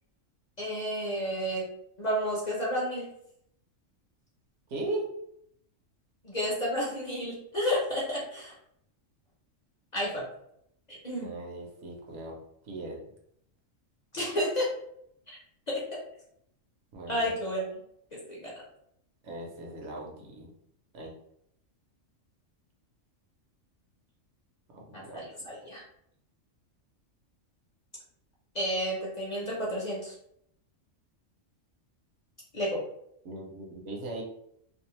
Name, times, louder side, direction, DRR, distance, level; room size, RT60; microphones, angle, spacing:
voice 1, 0.6-1.6 2.0-3.1 6.2-8.5 9.9-10.2 10.9-11.3 14.1-14.7 15.7-15.8 17.1-17.6 18.3-18.5 24.9-25.8 28.5-30.1 32.5-32.8, equal, 40° left, -5 dB, 0.8 m, -31 dB
voice 2, 4.7-5.0 11.2-12.3 12.6-13.0 16.9-17.3 19.2-20.5 20.9-21.1 24.7-25.2 33.2-34.2, right 2 dB, 70° right, -1 dB, 0.9 m, -38 dB
2.6 x 2.3 x 2.9 m, 0.73 s
omnidirectional pair, 1.3 m